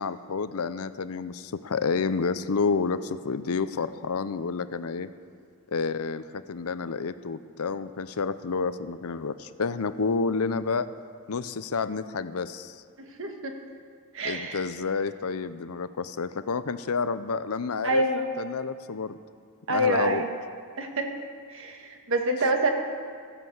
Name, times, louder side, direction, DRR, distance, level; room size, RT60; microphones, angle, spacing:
voice 1, 0.0-5.1 5.7-10.9 11.3-12.8 14.2-18.0 18.4-19.2 19.7-20.2, left 4 dB, 70° left, 13 dB, 0.6 m, -29 dB
voice 2, 13.0-13.5 14.1-14.6 17.8-18.3 19.7-20.3 20.8-21.1 21.5-22.7, right 1 dB, 60° right, 4 dB, 1.6 m, -26 dB
14.0 x 10.0 x 7.9 m, 2.1 s
head